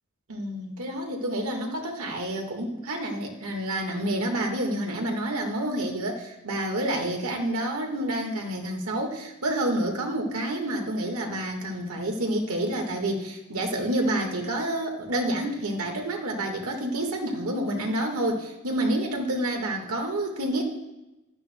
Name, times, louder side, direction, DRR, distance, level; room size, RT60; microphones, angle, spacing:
voice 1, 0.3-20.6, right 1 dB, 90° right, 2 dB, 1.6 m, -28 dB
12.5 x 11.5 x 2.2 m, 0.97 s
head